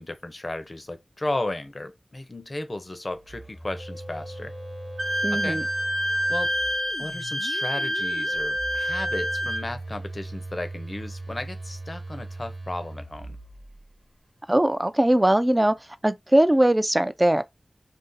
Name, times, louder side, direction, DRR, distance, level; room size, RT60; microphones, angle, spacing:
voice 1, 0.0-4.5 5.3-5.6 6.3-6.5 7.0-13.4, left 2 dB, 40° left, 0.6 m, -34 dB
Telephone, 3.2-7.2 8.3-14.0, right 2 dB, 40° right, 0.9 m, -40 dB
Musical instrument, 3.8-9.8, left 2 dB, 85° left, 0.4 m, -42 dB
Wind instrument woodwind instrument, 5.0-9.7, equal, 70° right, 0.8 m, -27 dB
voice 2, 5.2-5.6 14.5-15.7 16.0-17.4, right 1 dB, 20° right, 0.4 m, -20 dB
2.6 x 2.4 x 3.8 m
wide cardioid pair, 65°, 0 cm